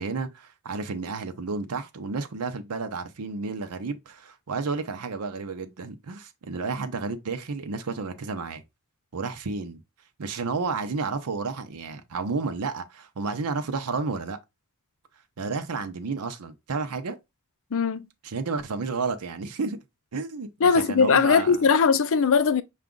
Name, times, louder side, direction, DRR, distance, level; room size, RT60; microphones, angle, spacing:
voice 1, 0.0-8.6 9.1-9.8 10.2-14.4 15.4-17.2 18.2-19.8 20.1-21.6, right 4 dB, 80° right, 0.7 m, -31 dB
voice 2, 17.7-18.1 20.6-22.6, left 5 dB, 65° left, 0.5 m, -20 dB
5.8 x 2.4 x 3.7 m
head